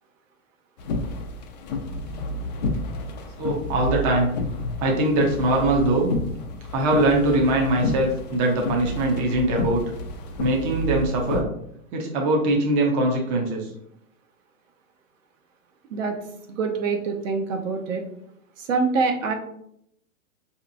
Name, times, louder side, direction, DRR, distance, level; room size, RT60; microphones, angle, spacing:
sound 1, 0.8-11.4, left 2 dB, 35° left, 0.4 m, -30 dB
voice 1, 3.4-4.3 4.8-6.1 6.7-9.8 10.4-11.4 11.9-13.6, right 1 dB, 25° right, 0 dB, 0.5 m, -22 dB
voice 2, 16.5-18.0 18.6-19.3, right 4 dB, 65° right, 4 dB, 0.8 m, -25 dB
4.5 x 2.8 x 2.5 m, 0.74 s
hypercardioid pair, 130°, 42 cm